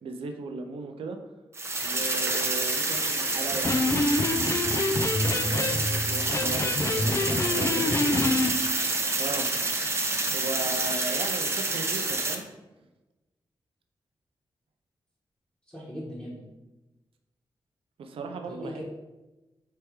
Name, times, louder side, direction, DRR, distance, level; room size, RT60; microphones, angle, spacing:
voice 1, 0.0-1.2 1.8-3.9 5.5-7.9 9.2-9.5 10.3-12.4 18.0-18.8, right 4 dB, 85° right, 5 dB, 0.4 m, -37 dB
sound 1, 1.5-12.3, right 2 dB, 30° right, 0.6 m, -28 dB
Electric guitar, 3.5-8.5, left 2 dB, 30° left, 0.4 m, -27 dB
voice 2, 7.4-8.3 15.7-16.4 18.4-18.8, equal, 10° left, -8 dB, 1.2 m, -39 dB
3.4 x 3.1 x 4.6 m, 1.1 s
cardioid pair, 70°, 9 cm